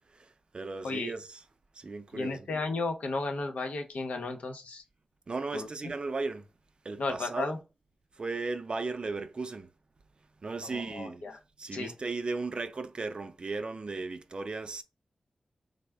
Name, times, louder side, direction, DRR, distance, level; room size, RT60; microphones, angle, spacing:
voice 1, 0.1-1.4 1.7-2.5 5.3-6.5 6.8-7.6 8.2-9.7 10.4-11.3 11.6-14.8, right 3 dB, 45° right, 0.4 m, -36 dB
voice 2, 2.1-4.8 5.5-5.9 7.0-7.6 10.6-11.4 11.7-11.9, left 3 dB, 90° left, 0.7 m, -34 dB
3.5 x 2.0 x 3.3 m
wide cardioid pair, 100°, 2 cm